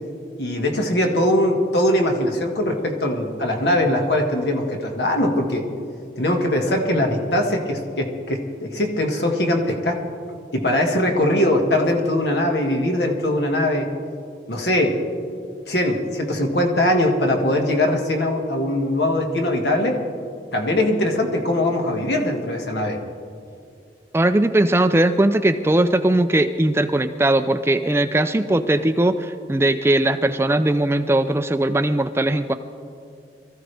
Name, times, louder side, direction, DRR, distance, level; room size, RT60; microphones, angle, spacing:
voice 1, 0.4-5.6 6.2-10.0 10.5-13.9 14.5-15.0 15.7-20.0 20.5-23.0, left 1 dB, 75° left, 2 dB, 1.8 m, -21 dB
voice 2, 24.1-32.5, right 1 dB, 15° right, 9 dB, 0.4 m, -19 dB
23.5 x 14.5 x 3.4 m, 2.4 s
head